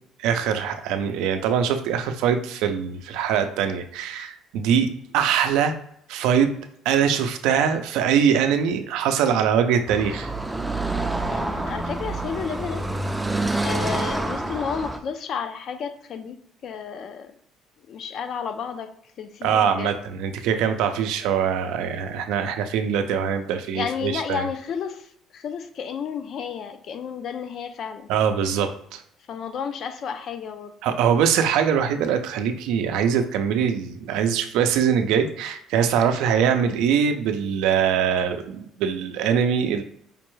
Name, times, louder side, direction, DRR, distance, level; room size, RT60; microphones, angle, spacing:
voice 1, 0.2-5.8 6.1-6.5 6.8-10.3 19.4-24.5 28.1-29.0 30.8-39.8, right 7 dB, 85° right, 7 dB, 0.4 m, -22 dB
Car passing by / Traffic noise roadway noise, 9.9-15.0, right 2 dB, 10° right, 0.4 m, -27 dB
voice 2, 11.2-12.9 13.6-16.4 16.6-17.3 17.9-18.9 19.2-20.0 23.7-28.1 29.3-30.7, left 6 dB, 55° left, 9 dB, 0.4 m, -32 dB
5.0 x 2.2 x 3.1 m, 0.70 s
cardioid pair, 105°, 0 cm